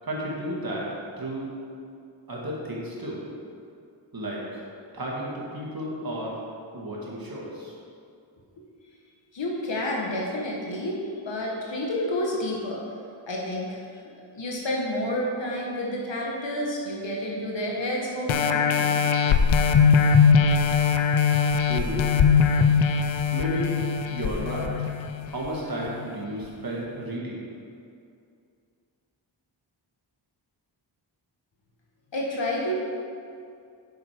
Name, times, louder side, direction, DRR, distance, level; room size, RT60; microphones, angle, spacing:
voice 1, 0.0-0.9 1.2-1.5 2.3-3.2 4.1-4.7 4.9-6.4 6.7-7.7 21.7-22.1 23.3-23.7 24.1-24.9 25.3-27.4, right 1 dB, 50° right, -4 dB, 2.0 m, -32 dB
voice 2, 9.3-11.0 11.2-12.8 13.3-14.0 14.3-18.9 32.1-32.7, left 1 dB, 70° left, -3 dB, 1.5 m, -29 dB
sound 1, 18.3-25.5 26.0-26.1, left 6 dB, 90° left, 0.6 m, -21 dB
7.9 x 6.6 x 4.5 m, 2.4 s
wide cardioid pair, 65°, 46 cm